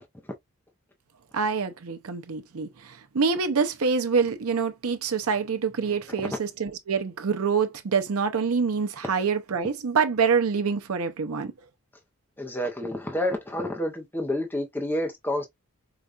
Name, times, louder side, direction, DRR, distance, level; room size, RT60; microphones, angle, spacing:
voice 1, 1.3-2.7 3.1-11.5, right 5 dB, 75° right, 0.6 m, -26 dB
voice 2, 12.4-15.5, left 1 dB, 10° left, 0.6 m, -29 dB
4.8 x 2.3 x 2.4 m
head